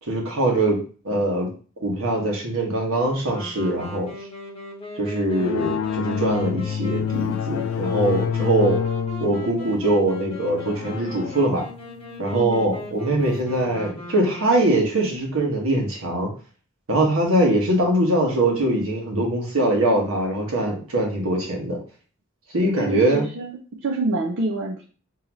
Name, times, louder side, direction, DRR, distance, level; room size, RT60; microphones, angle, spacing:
voice 1, 0.0-1.5 1.8-4.1 5.0-8.8 9.2-11.6 12.2-16.3 16.9-21.8 22.5-23.2, right 1 dB, 75° right, 0 dB, 1.2 m, -22 dB
Wind instrument woodwind instrument, 3.3-15.0, left 2 dB, 30° left, 1.0 m, -39 dB
sound 1, 5.4-13.5, left 7 dB, 75° left, 0.3 m, -28 dB
voice 2, 12.3-12.8 22.8-24.8, right 2 dB, 60° right, -2 dB, 0.5 m, -27 dB
3.8 x 2.8 x 2.9 m, 0.38 s
head